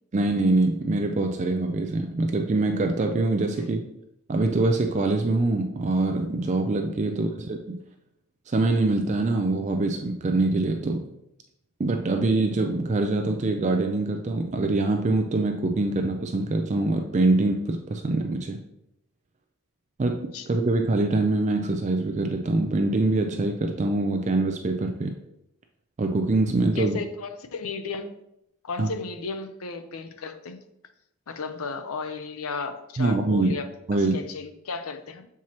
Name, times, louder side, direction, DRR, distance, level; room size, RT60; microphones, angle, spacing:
voice 1, 0.1-3.8 4.3-7.8 8.5-11.0 11.8-18.6 20.0-25.1 26.0-27.0 28.8-28.9 33.0-33.5 33.9-34.2, right 2 dB, 30° right, 4 dB, 0.4 m, -24 dB
voice 2, 26.8-28.1 28.6-30.6 31.3-35.3, left 4 dB, 70° left, 9 dB, 0.6 m, -34 dB
7.1 x 4.6 x 2.9 m, 0.80 s
head